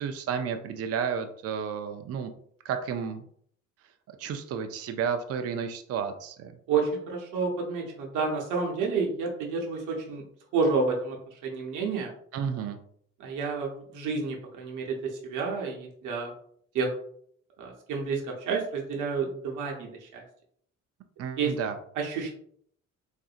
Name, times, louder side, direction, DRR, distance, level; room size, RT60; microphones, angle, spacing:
voice 1, 0.0-2.3 2.6-3.2 4.2-6.5 12.3-12.8 21.2-21.8, right 7 dB, 55° right, 7 dB, 0.4 m, -32 dB
voice 2, 6.7-10.2 10.5-12.1 13.2-16.3 16.7-16.9 17.6-20.2 21.4-21.5 22.0-22.3, right 4 dB, 80° right, 0 dB, 0.8 m, -30 dB
3.7 x 2.5 x 2.4 m, 0.63 s
cardioid pair, 90°, 30 cm